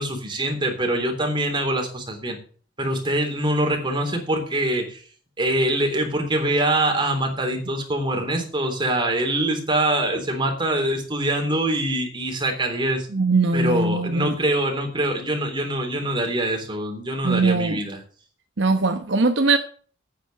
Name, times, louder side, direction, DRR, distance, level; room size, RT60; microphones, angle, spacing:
voice 1, 0.0-2.4 2.8-5.0 5.4-13.1 13.5-18.0, right 1 dB, 25° right, 3.4 m, -24 dB
voice 2, 13.1-14.3 17.2-17.8 18.6-19.6, right 3 dB, 65° right, 1.0 m, -20 dB
9.1 x 8.5 x 7.7 m
head